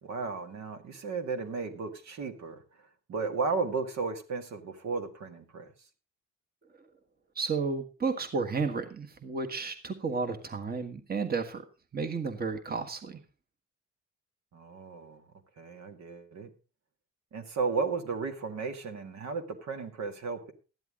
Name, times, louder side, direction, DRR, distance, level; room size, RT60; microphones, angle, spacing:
voice 1, 0.0-5.7 14.5-15.2 15.6-16.5 17.3-20.5, right 4 dB, 65° right, 6 dB, 2.0 m, -34 dB
voice 2, 7.3-11.6 11.9-13.2, right 4 dB, 30° right, 6 dB, 1.5 m, -32 dB
13.0 x 10.5 x 3.7 m, 0.33 s
cardioid pair, 90°, 30 cm